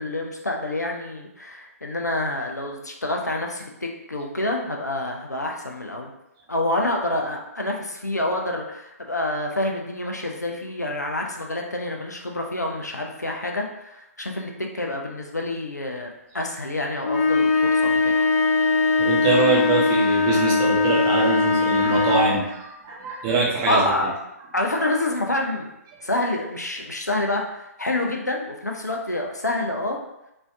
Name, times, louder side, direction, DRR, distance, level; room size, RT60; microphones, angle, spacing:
voice 1, 0.0-6.1 6.5-18.2 23.7-24.1 24.5-25.7 26.0-30.0, left 1 dB, 85° left, 1 dB, 0.5 m, -27 dB
sound 1, 17.0-22.5, left 4 dB, 50° left, 0.9 m, -20 dB
voice 2, 19.0-23.9, right 4 dB, 25° right, -4 dB, 0.8 m, -23 dB
3.1 x 2.6 x 2.4 m, 0.87 s
figure-of-eight pair, 130°, 9 cm